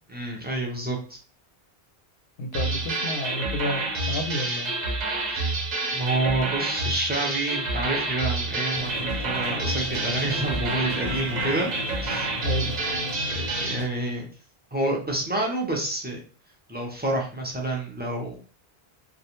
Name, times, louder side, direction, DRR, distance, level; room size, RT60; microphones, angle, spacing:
voice 1, 0.1-1.2 5.3-5.5 5.9-11.7 12.0-12.3 13.2-14.3 14.7-16.2 16.7-18.4, right 2 dB, 15° right, -1 dB, 0.4 m, -28 dB
voice 2, 2.4-4.7 12.4-12.7, left 1 dB, 70° left, 4 dB, 0.7 m, -30 dB
sound 1, 2.5-13.8, right 2 dB, 50° right, 0.7 m, -28 dB
sound 2, 8.7-13.9, left 1 dB, 75° right, 1.0 m, -36 dB
2.4 x 2.1 x 2.9 m, 0.39 s
omnidirectional pair, 1.0 m